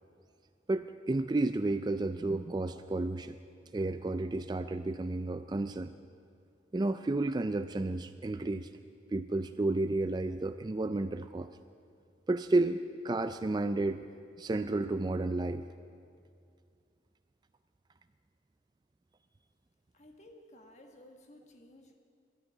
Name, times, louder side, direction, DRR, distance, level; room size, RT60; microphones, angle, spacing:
voice 1, 0.7-3.4 3.7-5.9 6.7-8.7 9.1-11.5 12.3-14.1 14.4-15.6, right 2 dB, 25° right, 11 dB, 0.3 m, -31 dB
voice 2, 19.9-22.0, left 1 dB, 40° left, 3 dB, 1.5 m, -55 dB
12.5 x 9.9 x 10.0 m, 2.3 s
head